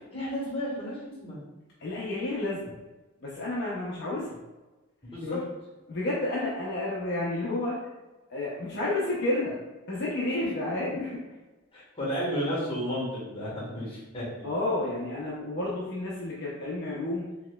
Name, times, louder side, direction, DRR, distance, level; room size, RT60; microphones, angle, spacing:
voice 1, 0.1-1.4 5.0-5.4 11.7-14.5, equal, 25° left, -6 dB, 1.4 m, -33 dB
voice 2, 1.8-2.8 3.2-4.4 5.2-5.4 5.9-7.8 8.3-9.6 9.9-11.2 14.4-17.3, left 2 dB, 50° left, -6 dB, 0.6 m, -30 dB
4.2 x 2.9 x 2.3 m, 1.2 s
head